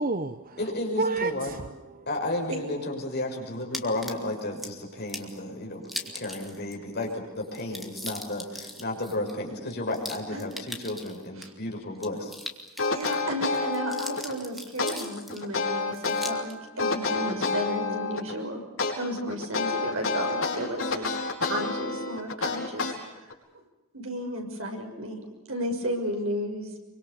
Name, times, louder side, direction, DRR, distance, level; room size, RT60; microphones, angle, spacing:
voice 1, 0.0-0.7 1.0-2.0 5.2-6.2 8.4-8.6 10.8-10.9, right 3 dB, 40° right, 0.8 m, -32 dB
voice 2, 0.6-1.5 2.1-5.8 6.1-12.7, left 1 dB, 50° left, 6.3 m, -33 dB
sound 1, 3.7-4.7 5.1-5.4 5.8-6.8 7.0-7.1 7.4-11.5 12.0-13.2 13.5-15.5 15.9-16.5, left 1 dB, ahead, 2.4 m, -40 dB
sound 2, 12.8-14.3 14.8-16.4 16.8-18.3 18.8-23.3, left 4 dB, 70° left, 5.1 m, -28 dB
voice 3, 12.9-18.6 19.0-21.1 21.4-23.6 23.9-26.8, equal, 70° right, 6.3 m, -33 dB
25.5 x 24.5 x 7.0 m
head